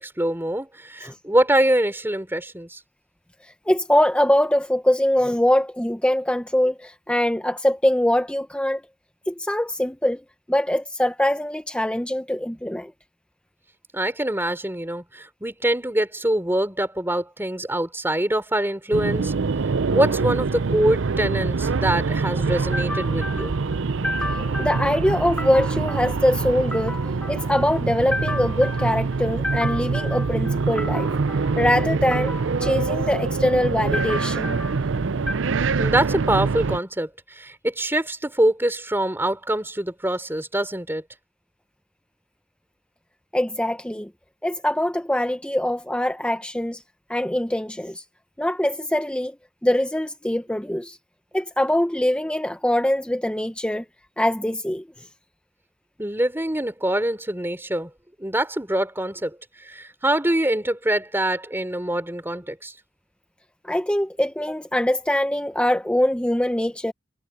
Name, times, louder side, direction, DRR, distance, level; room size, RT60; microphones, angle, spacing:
voice 1, 0.0-2.8 13.9-19.3 19.9-23.5 35.8-41.0 56.0-57.9 58.2-59.4 59.6-62.7, right 1 dB, 10° right, 3.3 m, -24 dB
voice 2, 3.7-8.8 9.3-10.2 10.5-12.9 22.7-34.9 35.3-35.4 43.3-44.1 44.4-46.8 47.1-48.0 48.4-49.4 49.6-51.0 51.3-53.8 54.2-54.8 63.6-66.9, left 1 dB, 5° left, 0.8 m, -23 dB
sound 1, 18.9-36.8, right 4 dB, 80° right, 0.6 m, -25 dB
head